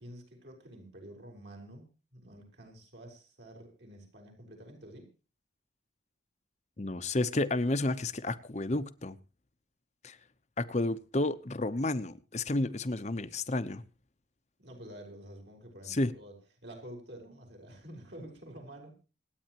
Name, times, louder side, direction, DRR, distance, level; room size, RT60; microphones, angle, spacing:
voice 1, 0.0-1.9 2.1-5.1 14.6-16.4 16.6-18.9, right 1 dB, 65° right, 4.7 m, -49 dB
voice 2, 6.8-9.2 10.0-10.2 10.6-13.8 15.9-16.1, left 2 dB, 35° left, 0.8 m, -31 dB
26.5 x 9.2 x 3.0 m
head